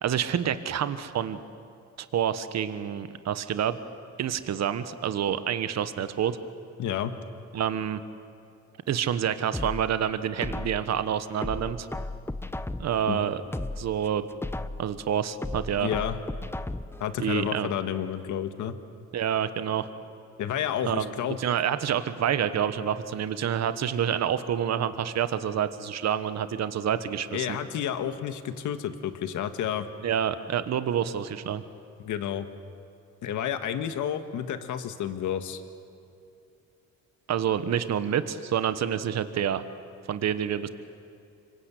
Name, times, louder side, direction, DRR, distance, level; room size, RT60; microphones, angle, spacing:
voice 1, 0.0-1.4 2.0-3.8 4.2-6.4 7.5-8.0 8.9-11.9 12.8-13.4 13.8-14.3 14.8-15.9 17.2-17.7 19.1-19.9 20.8-21.1 21.4-27.5 30.0-31.6 37.3-39.6 40.1-40.7, right 9 dB, 60° right, 12 dB, 1.3 m, -28 dB
voice 2, 6.8-7.1 13.1-13.2 15.8-16.2 17.0-18.7 20.4-21.4 27.3-29.9 32.0-32.5 33.2-35.6, left 9 dB, 75° left, 9 dB, 1.7 m, -30 dB
sound 1, 9.5-10.9 11.4-13.0 13.4-14.9 15.4-17.0 17.4-17.5, left 2 dB, 10° left, 0.8 m, -35 dB
26.0 x 23.5 x 8.4 m, 2.6 s
cardioid pair, 90°, 30 cm